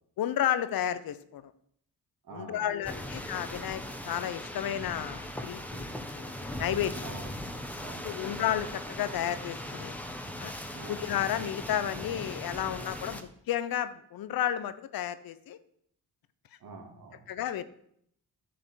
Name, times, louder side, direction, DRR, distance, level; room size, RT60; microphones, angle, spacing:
voice 1, 0.2-1.5 2.3-5.9 6.1-6.9 8.0-9.9 10.4-10.5 10.9-15.6 17.3-17.6, left 10 dB, 70° left, 13 dB, 0.9 m, -32 dB
voice 2, 2.2-3.1 7.0-7.5 7.8-8.3 10.7-11.1 16.6-17.3, right 3 dB, 70° right, 2 dB, 2.6 m, -47 dB
sound 1, 2.8-13.2, left 1 dB, 5° left, 1.5 m, -39 dB
10.5 x 6.6 x 6.4 m, 0.70 s
supercardioid pair, 65°, 37 cm